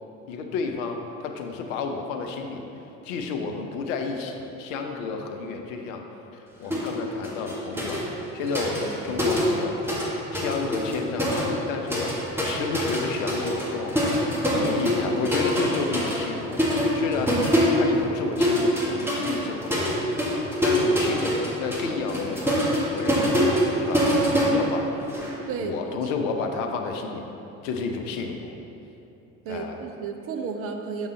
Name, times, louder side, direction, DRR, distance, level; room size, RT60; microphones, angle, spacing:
voice 1, 0.3-2.6 3.0-6.0 6.3-8.0 8.3-9.8 10.3-13.9 14.3-16.6 16.9-17.4 17.8-19.9 20.6-22.6 22.9-24.1 24.5-24.9 25.6-27.3 27.6-28.6 29.5-29.8, left 4 dB, 60° left, 3 dB, 0.7 m, -31 dB
sound 1, 6.7-7.0 7.2-10.1 10.3-25.3, equal, 5° right, 1.3 m, -25 dB
voice 2, 25.5-26.0 29.4-31.1, right 5 dB, 35° right, 4 dB, 0.4 m, -32 dB
7.0 x 5.3 x 3.2 m, 3.0 s
figure-of-eight pair, 55°, 43 cm